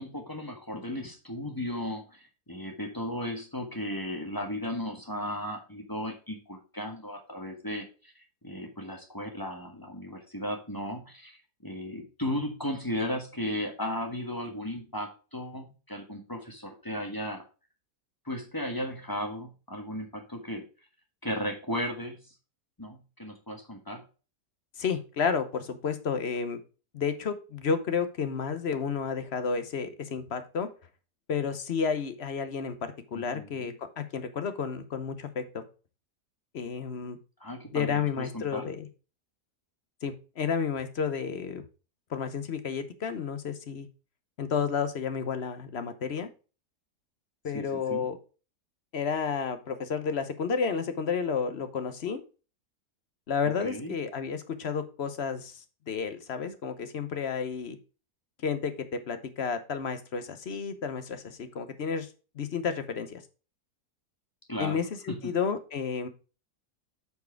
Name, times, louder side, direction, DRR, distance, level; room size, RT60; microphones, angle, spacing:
voice 1, 0.0-17.4 18.2-20.6 21.2-22.3 22.8-24.0 33.1-33.7 37.4-38.7 47.5-48.1 53.4-54.0 64.5-64.8 65.1-65.4, left 1 dB, 15° left, 3 dB, 1.4 m, -35 dB
voice 2, 24.8-26.6 26.9-30.7 31.3-35.6 36.5-37.2 37.7-38.9 40.0-41.6 42.1-43.9 44.4-46.3 47.4-48.2 48.9-52.2 53.3-57.8 58.4-62.1 62.4-63.2 64.6-66.1, left 6 dB, 50° left, 10 dB, 1.0 m, -31 dB
8.2 x 4.6 x 4.5 m, 0.33 s
omnidirectional pair, 1.7 m